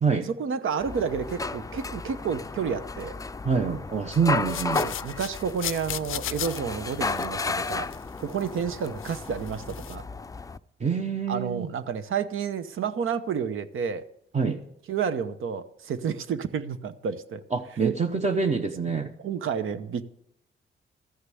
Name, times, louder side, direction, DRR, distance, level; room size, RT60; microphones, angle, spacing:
voice 1, 0.2-3.2 4.7-7.9 8.2-10.1 11.3-14.1 14.9-17.4 17.8-18.0 18.9-20.0, right 6 dB, 80° right, 12 dB, 0.9 m, -30 dB
sound 1, 0.8-10.6, left 3 dB, 15° left, 0.4 m, -33 dB
voice 2, 3.4-4.8 10.8-11.7 14.3-14.6 17.5-19.1, right 5 dB, 35° right, 5 dB, 0.8 m, -26 dB
sound 2, 4.5-8.6 8.8-10.0, left 12 dB, 80° left, 0.4 m, -37 dB
14.0 x 6.7 x 9.1 m, 0.75 s
cardioid pair, 105°, 21 cm